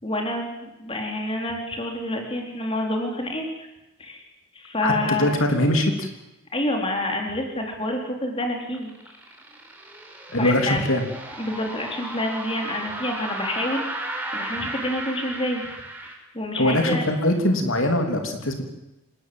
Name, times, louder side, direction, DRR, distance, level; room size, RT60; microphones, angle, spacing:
voice 1, 0.0-3.7 4.0-4.2 4.5-5.3 6.5-9.2 10.3-10.8 11.4-15.6 16.0-17.1, left 1 dB, 25° left, 2 dB, 4.1 m, -28 dB
voice 2, 4.8-6.1 10.3-11.0 16.6-18.6, left 1 dB, 70° left, 4 dB, 3.4 m, -22 dB
sound 1, 8.4-16.1, right 2 dB, 10° right, 4.5 m, -35 dB
28.0 x 19.5 x 8.0 m, 0.95 s
head